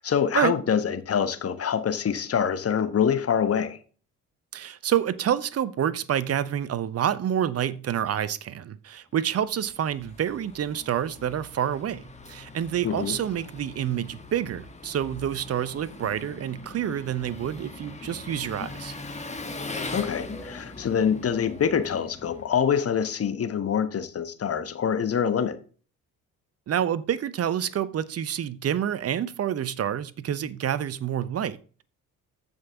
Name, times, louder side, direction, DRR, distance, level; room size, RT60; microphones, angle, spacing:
voice 1, 0.0-3.8 12.8-13.2 19.9-25.6, left 7 dB, 35° left, 1.2 m, -25 dB
voice 2, 4.5-18.9 26.7-31.8, right 10 dB, 35° right, 0.8 m, -28 dB
Engine, 9.4-23.0, left 3 dB, 15° left, 1.7 m, -41 dB
14.5 x 5.5 x 3.5 m
figure-of-eight pair, 50°, 41 cm